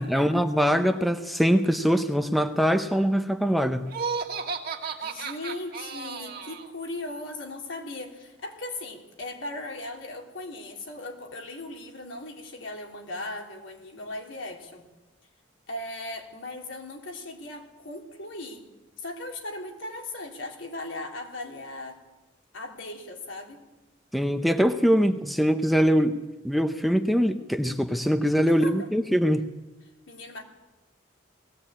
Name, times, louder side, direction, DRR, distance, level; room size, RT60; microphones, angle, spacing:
voice 1, 0.0-3.9 24.1-26.2 26.4-29.5, equal, ahead, 8 dB, 0.7 m, -23 dB
Laughter, 3.9-6.7, right 5 dB, 50° right, 1.9 m, -33 dB
voice 2, 5.0-14.8 15.7-18.7 19.0-22.0 22.5-23.6 28.5-28.8 30.1-30.4, left 2 dB, 75° left, 1 dB, 3.4 m, -38 dB
20.0 x 16.5 x 8.8 m, 1.1 s
head